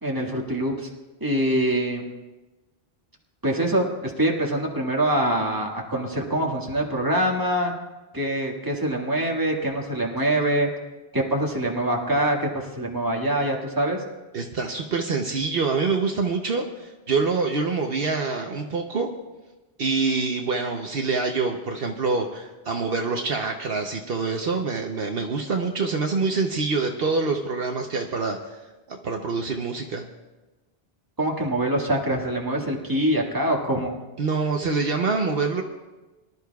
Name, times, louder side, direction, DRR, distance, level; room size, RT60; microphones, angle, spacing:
voice 1, 0.0-0.9 1.2-2.0 3.4-7.7 8.1-10.7 11.1-14.0 31.2-34.0, right 1 dB, 20° right, -1 dB, 1.8 m, -24 dB
voice 2, 14.3-19.1 19.8-28.6 28.9-30.1 34.2-35.6, right 4 dB, 65° right, 3 dB, 1.0 m, -26 dB
23.5 x 12.5 x 2.3 m, 1.1 s
omnidirectional pair, 1.1 m